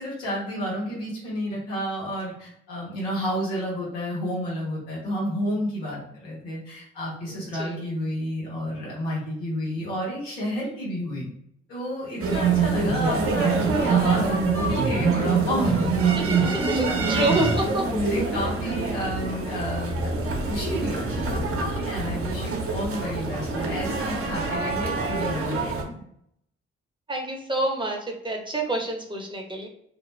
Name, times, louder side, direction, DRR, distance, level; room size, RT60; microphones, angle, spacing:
voice 1, 0.0-11.3 11.7-15.8 16.3-20.1 20.4-26.0, equal, 90° left, -5 dB, 1.1 m, -31 dB
voice 2, 7.3-7.8 12.3-12.6 16.1-18.0 27.1-29.7, right 1 dB, 15° right, 0 dB, 0.9 m, -28 dB
sound 1, 12.2-25.8, right 4 dB, 50° right, 0.9 m, -25 dB
2.6 x 2.1 x 3.1 m, 0.73 s
hypercardioid pair, 45°, 30 cm